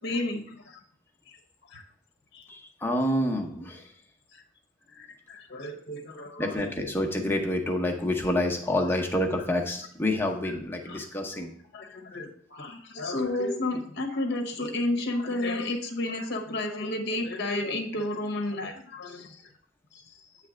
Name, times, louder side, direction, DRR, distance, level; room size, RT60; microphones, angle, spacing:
voice 1, 0.0-0.8 1.3-1.4 1.7-1.8 2.3-2.5 4.3-4.4 4.9-6.7 8.2-8.3 8.9-9.0 9.4-9.5 10.4-10.6 10.8-11.0 11.7-19.5 19.9-20.2, left 2 dB, 55° left, 4 dB, 0.9 m, -32 dB
voice 2, 2.8-3.8 6.4-11.5, left 1 dB, 10° left, 1 dB, 0.8 m, -27 dB
8.9 x 3.3 x 4.9 m, 0.65 s
head